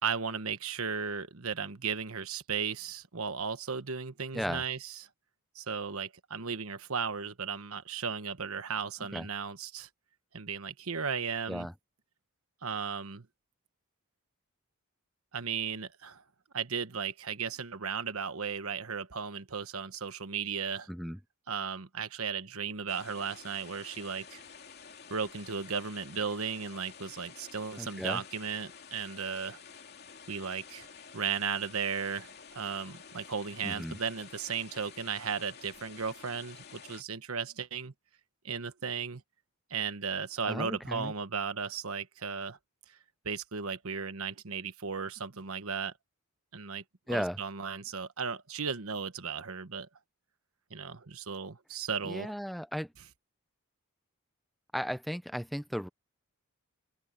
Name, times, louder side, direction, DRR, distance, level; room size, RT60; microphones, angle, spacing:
voice 1, 0.0-5.1 5.5-9.9 10.3-11.7 12.6-13.3 15.3-16.2 16.5-20.9 21.5-24.4 25.1-29.6 30.3-30.9 31.1-37.9 38.4-39.2 39.7-42.6 42.9-43.0 43.2-45.9 46.5-49.9 50.7-52.3, right 6 dB, 80° right, 1.2 m, -35 dB
voice 2, 20.9-21.2 27.8-28.2 33.6-34.0 40.4-41.1 47.1-47.4 52.0-52.9 54.7-55.9, equal, ahead, 0.4 m, -35 dB
sound 1, 22.9-37.0, left 6 dB, 45° left, 2.8 m, -51 dB
head